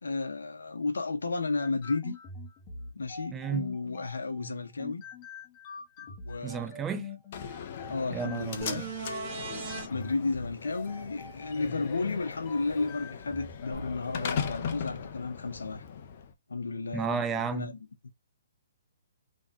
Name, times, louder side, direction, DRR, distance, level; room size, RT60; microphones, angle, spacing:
voice 1, 0.0-2.2 2.9-5.0 6.0-6.9 7.9-8.8 9.9-15.8 16.5-17.9, left 3 dB, 85° left, 1.1 m, -33 dB
sound 1, 1.6-14.8, left 4 dB, 30° left, 1.1 m, -45 dB
voice 2, 3.3-3.7 6.4-7.1 8.1-8.9 16.9-17.7, right 7 dB, 15° right, 0.5 m, -33 dB
Slam, 7.3-16.3, left 7 dB, 45° left, 0.8 m, -39 dB
sound 2, 8.6-9.9 13.7-13.8, right 4 dB, 35° right, 2.1 m, -37 dB
3.6 x 3.2 x 2.8 m
hypercardioid pair, 140°, 0 cm